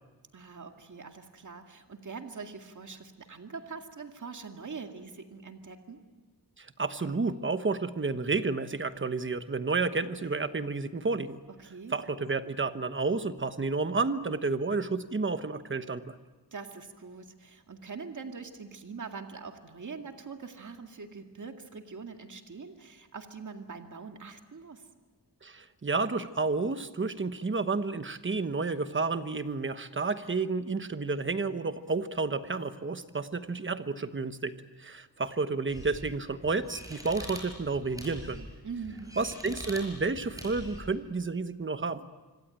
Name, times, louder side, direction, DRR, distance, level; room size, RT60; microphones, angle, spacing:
voice 1, 0.3-6.0 11.6-12.0 16.5-24.8 38.6-39.2, right 5 dB, 45° right, 4 dB, 2.1 m, -43 dB
voice 2, 6.6-11.4 11.9-16.2 25.4-38.5 39.2-42.1, right 3 dB, 30° right, 10 dB, 1.1 m, -31 dB
sound 1, 35.7-40.9, equal, 10° right, 6.2 m, -44 dB
26.0 x 25.5 x 9.0 m, 1.3 s
wide cardioid pair, 155°, 41 cm